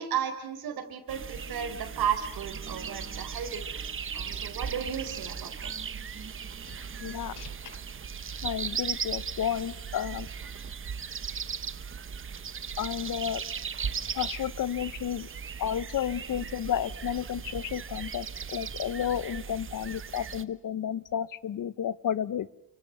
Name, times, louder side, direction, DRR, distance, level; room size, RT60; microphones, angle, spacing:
voice 1, 0.0-3.6 4.1-5.7, right 8 dB, 75° right, 5 dB, 4.7 m, -34 dB
sound 1, 1.1-20.4, right 6 dB, 35° right, 1.1 m, -37 dB
voice 2, 7.0-7.7 8.4-10.3 12.8-13.4 14.1-15.3 15.6-18.3 18.5-22.5, left 9 dB, 60° left, 18 dB, 1.0 m, -32 dB
30.0 x 25.0 x 7.8 m, 0.75 s
wide cardioid pair, 145°, 37 cm